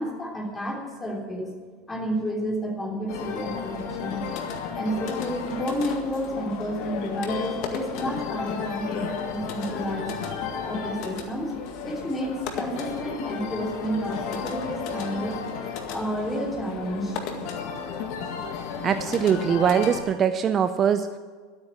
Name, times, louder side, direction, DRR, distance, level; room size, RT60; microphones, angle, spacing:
voice 1, 0.0-1.5 1.9-4.2 4.7-10.4 10.6-15.4 15.9-17.2, equal, 15° left, -1 dB, 3.3 m, -30 dB
sound 1, 3.1-20.0, left 6 dB, 55° left, 1.9 m, -33 dB
voice 2, 18.8-21.2, right 8 dB, 30° right, 10 dB, 0.5 m, -22 dB
13.0 x 8.8 x 8.6 m, 1.5 s
supercardioid pair, 145°, 0 cm